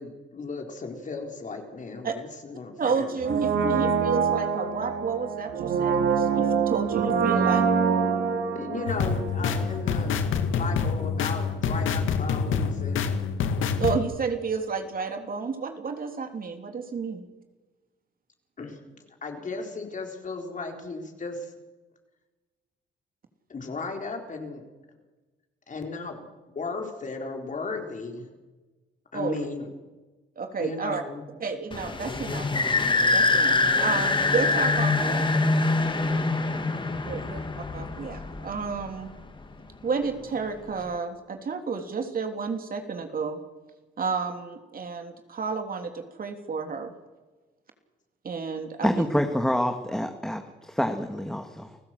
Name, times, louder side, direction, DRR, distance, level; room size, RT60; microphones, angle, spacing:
voice 1, 0.0-3.2 8.5-10.2 10.5-13.2 18.6-21.5 23.5-24.6 25.7-28.3 29.1-29.7 30.6-31.2, left 3 dB, 40° left, 3 dB, 4.2 m, -36 dB
voice 2, 2.8-7.7 13.8-17.2 29.1-29.4 30.4-31.0 31.4-32.5 33.1-35.2 37.0-37.4 37.7-39.1 39.8-43.4 44.0-46.9 48.2-49.1, right 5 dB, 45° right, 5 dB, 3.2 m, -31 dB
Brass instrument, 3.2-10.1 10.3-10.4, right 6 dB, 70° right, 3.2 m, -25 dB
sound 1, 8.9-14.0, left 6 dB, 80° left, 2.1 m, -26 dB
sound 2, 31.7-39.0, left 3 dB, 25° left, 2.2 m, -24 dB
voice 3, 48.8-51.8, equal, 5° left, 5 dB, 1.9 m, -27 dB
29.0 x 15.5 x 7.8 m, 1.2 s
cardioid pair, 90°, 20 cm